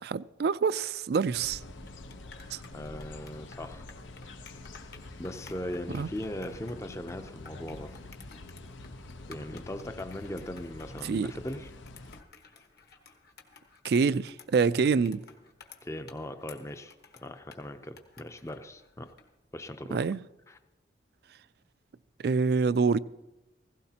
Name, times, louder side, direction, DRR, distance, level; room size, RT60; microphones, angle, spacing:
voice 1, 0.0-1.6 2.5-2.6 5.9-6.1 11.0-11.3 13.8-15.2 19.9-20.2 22.2-23.0, right 5 dB, 55° right, 0.3 m, -26 dB
sound 1, 1.3-12.2, left 2 dB, 90° left, 0.8 m, -46 dB
sound 2, 1.6-19.3, left 5 dB, 55° left, 1.2 m, -54 dB
voice 2, 2.7-3.9 5.2-7.9 9.3-11.7 15.8-16.9 17.2-19.1 19.5-20.0 20.5-20.6, left 1 dB, 15° left, 0.5 m, -39 dB
16.0 x 16.0 x 2.8 m
head